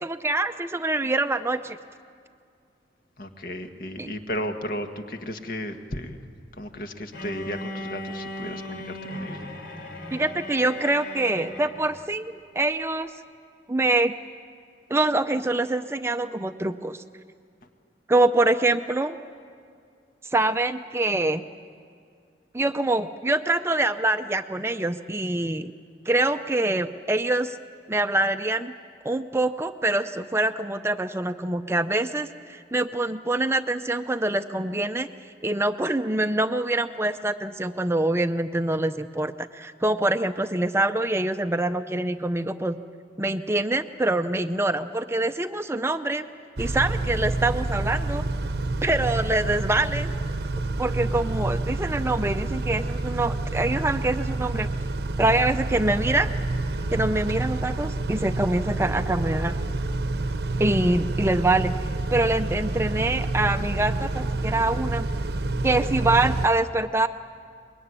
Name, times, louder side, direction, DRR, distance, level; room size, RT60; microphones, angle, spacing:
voice 1, 0.0-1.8 4.0-4.1 10.1-13.1 13.7-14.2 14.9-17.0 18.1-19.2 20.3-21.4 22.5-25.7 26.1-27.6 27.9-28.7 29.0-35.1 35.4-42.8 43.2-46.2 46.6-48.2 48.8-50.1 50.8-54.7 55.2-56.3 56.9-59.5 60.6-61.8 62.1-65.1 65.6-67.1, right 2 dB, 15° right, 9 dB, 0.6 m, -25 dB
voice 2, 3.2-6.2 6.6-9.5, equal, 55° left, 5 dB, 1.7 m, -34 dB
Bowed string instrument, 7.1-12.0, left 1 dB, 70° left, 4.1 m, -37 dB
Car / Idling / Accelerating revving vroom, 46.6-66.5, right 2 dB, 65° right, 0.9 m, -28 dB
25.0 x 22.0 x 9.8 m, 2.2 s
head